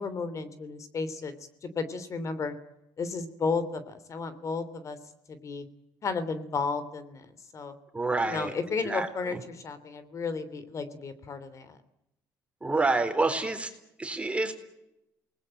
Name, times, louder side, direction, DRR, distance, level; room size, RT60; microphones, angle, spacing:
voice 1, 0.0-1.3 1.6-2.5 3.0-5.0 5.3-5.6 6.0-7.7 8.2-11.8, left 4 dB, 45° left, 13 dB, 3.1 m, -33 dB
voice 2, 7.9-8.5 8.8-9.1 12.6-13.7 14.0-14.5, right 3 dB, 15° right, 6 dB, 4.1 m, -27 dB
28.5 x 20.5 x 8.9 m, 0.87 s
cardioid pair, 85°, 7 cm